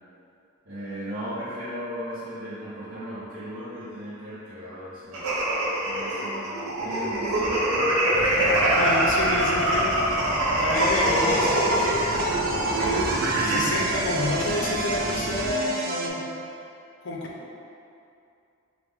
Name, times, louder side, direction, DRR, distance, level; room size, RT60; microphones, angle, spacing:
voice 1, 0.6-5.3 5.8-7.6 8.4-8.8 10.9-11.4, equal, 60° right, -13 dB, 1.0 m, -37 dB
sound 1, 5.1-13.8, right 1 dB, 90° right, 0.8 m, -24 dB
sound 2, 8.1-15.5, equal, 20° right, 1.0 m, -35 dB
voice 2, 8.8-9.9 10.3-12.1 12.7-16.4 17.0-17.3, left 2 dB, 60° left, -2 dB, 0.6 m, -29 dB
sound 3, 10.7-16.1, right 4 dB, 40° right, 0.3 m, -30 dB
4.8 x 2.1 x 3.6 m, 2.6 s
head